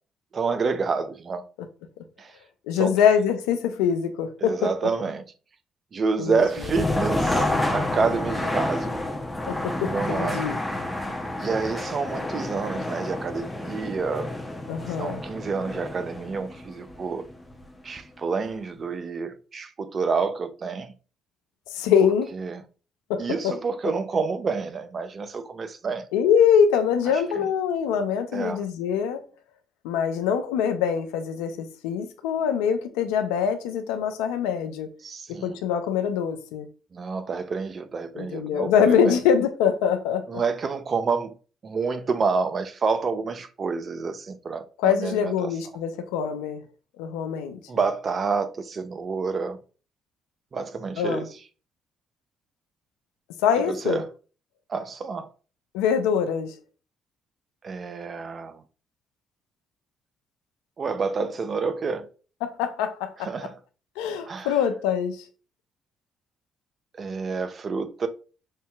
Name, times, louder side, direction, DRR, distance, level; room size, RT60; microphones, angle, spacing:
voice 1, 0.3-1.4 2.2-2.3 2.7-3.0 4.4-5.2 5.9-7.4 7.7-9.0 9.8-10.4 11.4-14.3 15.0-17.3 17.8-20.9 22.3-22.6 23.2-26.1 27.3-27.5 28.3-28.6 35.0-35.6 36.9-39.2 40.3-41.3 41.6-45.5 47.7-49.6 50.5-51.2 53.7-54.1 54.7-55.3 57.6-58.6 60.8-62.1 63.2-63.6 64.3-64.5 67.0-68.1, right 4 dB, 45° right, 0.6 m, -28 dB
voice 2, 2.7-4.7 6.2-6.4 9.5-10.6 14.7-15.2 21.7-22.3 23.1-23.5 26.1-29.2 29.8-34.9 35.3-36.7 38.2-40.4 44.8-46.6 47.0-47.6 51.0-51.3 53.4-54.0 55.7-56.5 62.4-63.3 64.0-65.3, left 7 dB, 80° left, 0.5 m, -24 dB
sound 1, 6.3-18.2, left 1 dB, 5° left, 0.9 m, -30 dB
5.5 x 2.6 x 2.4 m
hypercardioid pair, 55°, 0 cm